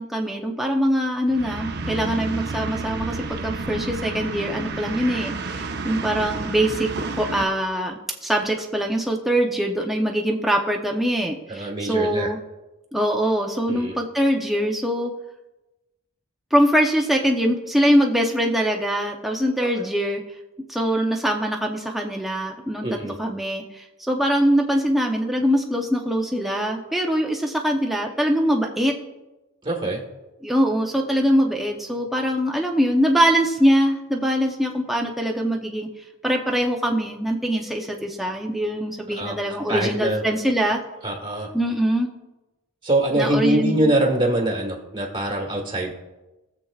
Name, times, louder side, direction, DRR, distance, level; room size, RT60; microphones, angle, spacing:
voice 1, 0.0-12.4 12.9-15.1 16.5-20.2 20.7-29.0 30.4-35.9 36.2-40.8 41.5-42.1 43.1-43.9, equal, ahead, 0 dB, 0.7 m, -23 dB
sound 1, 1.3-7.5, right 3 dB, 50° right, 0.8 m, -30 dB
voice 2, 11.5-12.3 13.7-13.9 19.8-19.9 22.8-23.2 29.6-30.0 39.2-39.4 39.7-40.2 41.0-41.5 42.8-45.9, right 1 dB, 25° right, -1 dB, 1.4 m, -23 dB
20.0 x 7.2 x 2.4 m, 1.1 s
head